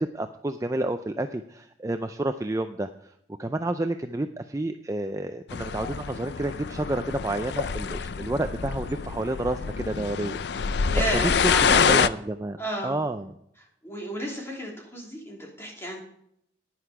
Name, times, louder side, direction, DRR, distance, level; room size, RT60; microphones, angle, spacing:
voice 1, 0.0-3.1 3.4-10.4 11.0-12.6 12.8-13.3, right 2 dB, 15° right, 8 dB, 0.4 m, -30 dB
sound 1, 5.5-12.1, left 6 dB, 60° left, 0.4 m, -26 dB
voice 2, 10.9-11.9 12.6-13.0 13.8-16.0, right 1 dB, 15° left, -1 dB, 3.1 m, -32 dB
10.5 x 10.0 x 4.8 m, 0.72 s
head